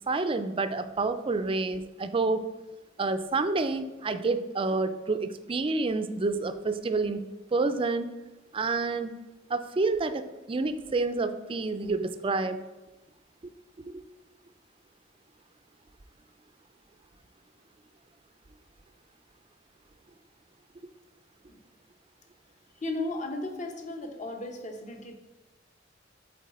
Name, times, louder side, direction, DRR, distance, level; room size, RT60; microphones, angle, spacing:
voice 1, 0.1-2.4 3.0-7.2 7.5-8.1 8.5-9.1 9.5-12.6 13.9-14.0, right 3 dB, 30° right, 10 dB, 0.4 m, -28 dB
voice 2, 22.7-25.1, left 2 dB, 40° left, 4 dB, 0.8 m, -35 dB
7.6 x 4.0 x 4.2 m, 1.1 s
head